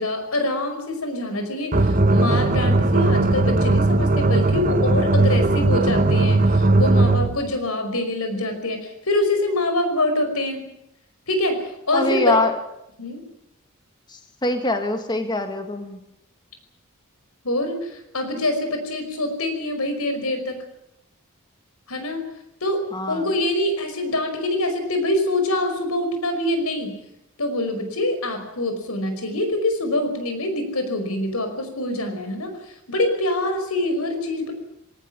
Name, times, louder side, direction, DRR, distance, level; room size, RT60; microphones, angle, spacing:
voice 1, 0.0-10.6 11.3-12.4 13.0-13.3 17.4-20.6 21.9-22.2 22.6-27.0 27.4-32.5 32.9-34.5, left 1 dB, 85° left, 7 dB, 5.5 m, -25 dB
sound 1, 1.7-7.4, right 2 dB, 40° right, 1.1 m, -18 dB
voice 2, 11.9-12.5 14.1-16.0 22.9-23.3, left 2 dB, 20° left, 6 dB, 1.8 m, -24 dB
20.5 x 18.5 x 9.7 m, 0.80 s
head